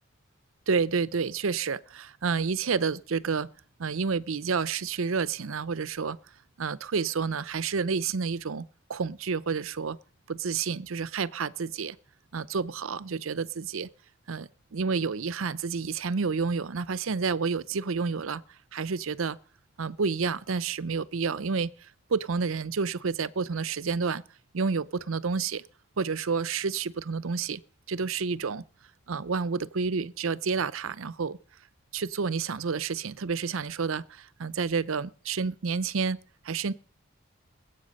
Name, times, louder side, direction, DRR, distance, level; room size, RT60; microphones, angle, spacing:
voice 1, 0.7-3.5 3.8-6.2 6.6-10.0 10.3-12.0 12.3-13.9 14.3-18.4 18.7-19.4 19.8-24.2 24.5-25.6 26.0-27.6 27.9-28.6 29.1-31.4 31.9-36.2 36.4-36.7, right 5 dB, 80° right, 0.6 m, -29 dB
20.5 x 8.3 x 5.4 m
head